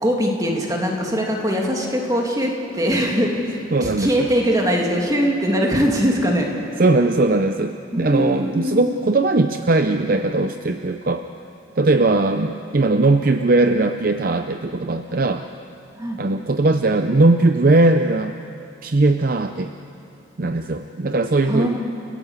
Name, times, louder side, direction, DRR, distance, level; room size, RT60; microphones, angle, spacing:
voice 1, 0.0-6.8 7.9-8.8 15.9-16.2 21.5-21.8, equal, 20° right, 0 dB, 2.7 m, -21 dB
voice 2, 3.7-4.3 6.8-11.2 11.8-15.4 16.2-18.4 18.8-19.7 20.4-21.8, right 2 dB, 45° right, 7 dB, 0.6 m, -19 dB
30.0 x 14.5 x 8.2 m, 2.7 s
head